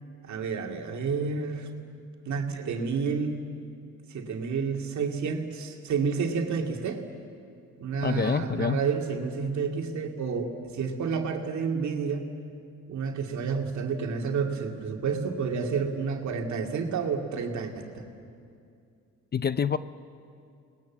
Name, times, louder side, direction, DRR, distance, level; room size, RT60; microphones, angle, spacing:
voice 1, 0.3-1.7 2.3-3.4 4.1-7.0 7.8-12.3 12.9-18.0, right 5 dB, 70° right, 3 dB, 2.6 m, -30 dB
voice 2, 8.0-8.8 19.3-19.8, left 6 dB, 35° left, 15 dB, 0.6 m, -26 dB
29.5 x 20.0 x 7.4 m, 2.4 s
cardioid pair, 90°, 30 cm